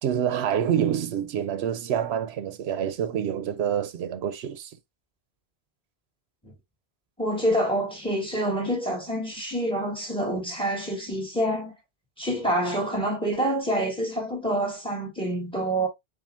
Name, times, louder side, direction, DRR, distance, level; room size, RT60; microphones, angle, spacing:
voice 1, 0.0-4.8, right 9 dB, 85° right, 0.8 m, -27 dB
voice 2, 7.2-11.7 12.2-15.9, right 1 dB, 5° left, 1.9 m, -27 dB
7.2 x 2.5 x 2.4 m
omnidirectional pair, 1.1 m